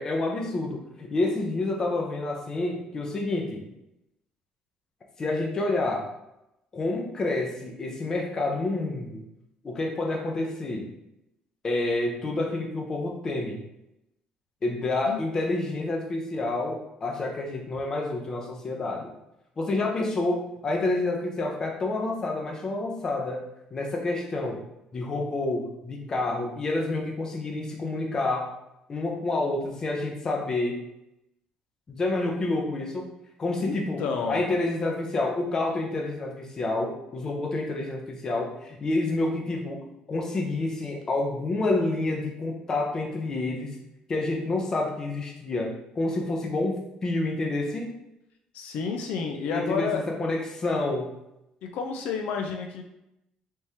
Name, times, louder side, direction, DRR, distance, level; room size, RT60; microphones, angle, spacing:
voice 1, 0.0-3.6 5.2-6.1 6.7-9.2 9.6-10.9 11.6-13.6 14.6-19.1 19.6-23.4 23.7-24.6 24.9-28.5 28.9-30.8 31.9-33.1 33.4-39.8 40.1-43.7 44.1-47.9 49.4-51.1, left 2 dB, 25° left, 1 dB, 0.6 m, -28 dB
voice 2, 33.6-34.4 48.5-50.0 51.6-52.8, left 5 dB, 70° left, 3 dB, 0.4 m, -30 dB
3.5 x 3.0 x 2.7 m, 0.86 s
cardioid pair, 155°, 2 cm